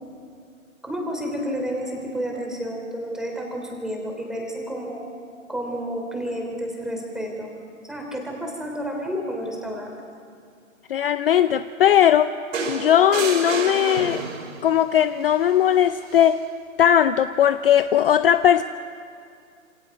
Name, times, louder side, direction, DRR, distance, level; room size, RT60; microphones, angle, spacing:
voice 1, 0.8-5.0 5.5-7.6 7.8-10.0, equal, ahead, 0 dB, 3.4 m, -30 dB
voice 2, 10.9-12.3 12.7-14.2 14.6-16.4 16.8-18.6, left 10 dB, 45° left, 12 dB, 0.6 m, -18 dB
sound 1, 12.5-14.7 16.1-16.3, right 4 dB, 65° right, 6.2 m, -29 dB
28.0 x 27.5 x 5.3 m, 2.3 s
hypercardioid pair, 155°, 41 cm